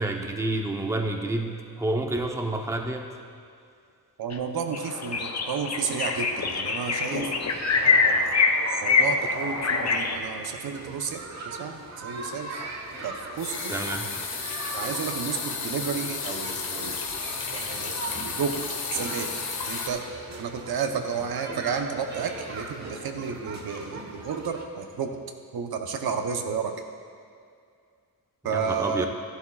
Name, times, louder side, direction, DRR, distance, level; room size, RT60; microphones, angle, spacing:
voice 1, 0.0-3.0 13.7-14.1 28.5-29.1, right 2 dB, 10° right, 2 dB, 0.7 m, -29 dB
voice 2, 4.2-7.3 7.8-8.3 8.8-12.5 13.0-13.7 14.7-17.0 17.5-25.2 25.5-26.7 28.4-29.1, right 6 dB, 85° right, 5 dB, 0.8 m, -32 dB
sound 1, 4.3-4.4 4.7-10.2, left 4 dB, 45° left, 0.7 m, -24 dB
sound 2, 5.3-6.9 7.2-7.5 7.9-8.0 12.6-19.9, left 5 dB, 80° left, 1.2 m, -33 dB
sound 3, 7.5-24.6, right 2 dB, 50° right, 1.2 m, -40 dB
13.5 x 11.5 x 2.3 m, 2.3 s
wide cardioid pair, 125°, 36 cm